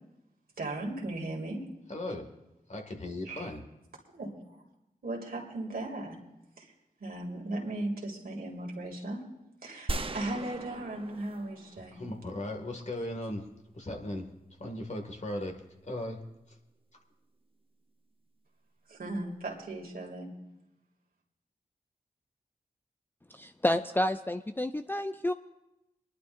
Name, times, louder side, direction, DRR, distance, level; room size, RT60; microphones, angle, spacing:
voice 1, 0.6-1.7 3.3-3.5 4.1-4.6 5.0-6.2 6.6-6.7 7.0-9.3 9.6-12.0 18.9-20.3, right 2 dB, 80° right, 0 dB, 2.5 m, -37 dB
voice 2, 1.9-2.3 2.7-3.6 11.9-13.5 13.7-14.3 14.6-15.6 15.8-16.2 16.5-16.6, left 1 dB, 50° left, 3 dB, 2.0 m, -37 dB
sound 1, 9.9-12.2, right 3 dB, 35° right, 0.8 m, -38 dB
voice 3, 23.3-25.3, left 1 dB, 15° left, 9 dB, 0.4 m, -30 dB
24.0 x 11.0 x 2.6 m, 0.91 s
cardioid pair, 40°, 15 cm